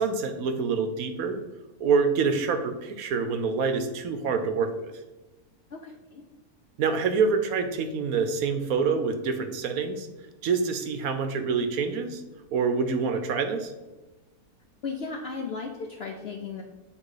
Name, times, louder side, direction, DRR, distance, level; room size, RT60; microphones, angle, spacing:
voice 1, 0.0-1.4 1.8-4.9 6.8-10.1 10.4-12.2 12.5-13.7, right 5 dB, 70° right, 8 dB, 1.0 m, -26 dB
voice 2, 5.7-6.2 14.8-16.6, left 4 dB, 60° left, 2 dB, 0.6 m, -35 dB
8.4 x 3.1 x 4.8 m, 1.1 s
omnidirectional pair, 1.7 m